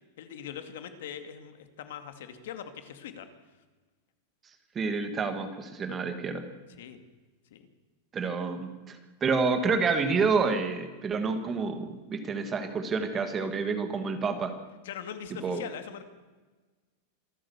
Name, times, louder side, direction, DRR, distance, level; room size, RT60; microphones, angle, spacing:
voice 1, 0.2-3.3 6.8-7.0 7.5-7.7 14.8-16.0, left 9 dB, 65° left, 8 dB, 2.4 m, -41 dB
voice 2, 4.8-6.4 8.1-14.6 15.4-15.6, right 4 dB, 15° right, 7 dB, 1.6 m, -29 dB
26.5 x 14.0 x 7.1 m, 1.3 s
supercardioid pair, 180°, 0 cm